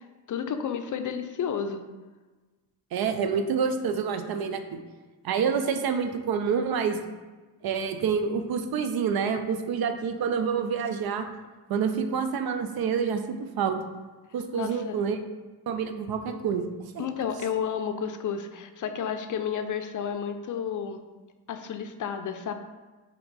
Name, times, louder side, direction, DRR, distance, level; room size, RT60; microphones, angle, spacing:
voice 1, 0.0-1.8 14.5-15.0 17.0-21.0 21.5-22.5, left 7 dB, 50° left, 8 dB, 0.5 m, -31 dB
voice 2, 2.9-4.8 5.2-7.0 7.6-11.2 11.7-13.8 14.3-15.2 15.7-16.7 16.9-17.1, right 6 dB, 60° right, 7 dB, 0.6 m, -27 dB
4.3 x 3.0 x 4.0 m, 1.3 s
supercardioid pair, 65°, 42 cm